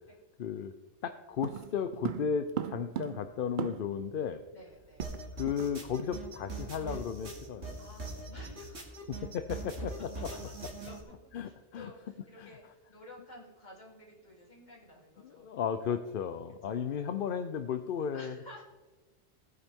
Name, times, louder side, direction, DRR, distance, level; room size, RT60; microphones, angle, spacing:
voice 1, 0.4-0.7 1.0-4.4 5.4-7.8 9.1-10.3 11.3-11.9 12.4-12.5 15.4-18.4, left 7 dB, 60° left, 9 dB, 0.7 m, -34 dB
sound 1, 1.4-4.1 4.4-4.5 4.7-5.7 6.0-6.2 6.6-6.8, right 9 dB, 55° right, 0.6 m, -39 dB
voice 2, 4.5-5.1 7.8-9.1 10.3-10.4 10.8-15.5 16.9-17.1 18.1-18.6, left 1 dB, 40° left, -4 dB, 3.4 m, -53 dB
sound 2, 5.0-11.0, right 2 dB, 80° right, 2.8 m, -41 dB
18.0 x 9.7 x 3.6 m, 1.2 s
omnidirectional pair, 1.2 m